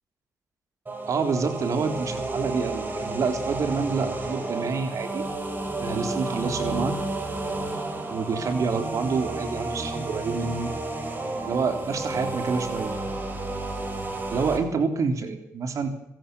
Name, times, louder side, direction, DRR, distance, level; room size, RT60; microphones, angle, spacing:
sound 1, 0.9-14.6, right 2 dB, 35° right, 6.8 m, -31 dB
voice 1, 1.1-5.3 5.8-7.0 8.1-10.7 11.5-12.9 14.3-15.9, right 5 dB, 65° right, 8 dB, 3.8 m, -27 dB
27.0 x 17.0 x 7.0 m, 0.82 s
cardioid pair, 70°, 6 cm